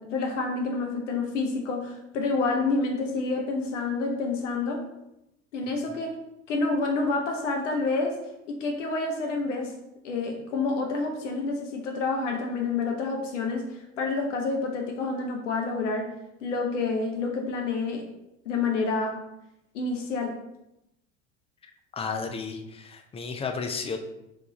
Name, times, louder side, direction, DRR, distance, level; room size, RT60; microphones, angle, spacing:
voice 1, 0.0-4.8 5.5-6.1 6.5-8.2 8.5-9.7 10.0-16.1 16.4-18.0 18.5-19.2 19.7-20.3, left 3 dB, 75° left, 2 dB, 0.7 m, -28 dB
voice 2, 21.6-24.0, left 5 dB, 15° left, 5 dB, 0.3 m, -33 dB
3.4 x 3.3 x 3.8 m, 0.88 s
figure-of-eight pair, 65°, 37 cm